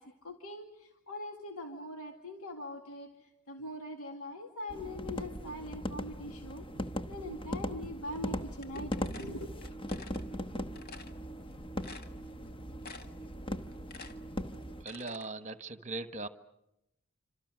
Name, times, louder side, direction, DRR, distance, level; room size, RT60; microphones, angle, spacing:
voice 1, 0.0-6.7 7.1-9.5, left 1 dB, 85° left, 4 dB, 2.1 m, -42 dB
sound 1, 4.7-14.8, equal, 25° left, 1.0 m, -39 dB
sound 2, 8.6-10.2 10.7-11.1 11.5-11.6 11.8-12.5 12.8-13.3 13.6-15.3, left 4 dB, 45° left, 1.7 m, -49 dB
voice 2, 14.8-16.3, right 3 dB, 30° right, 11 dB, 1.3 m, -39 dB
27.5 x 26.5 x 6.3 m, 0.84 s
head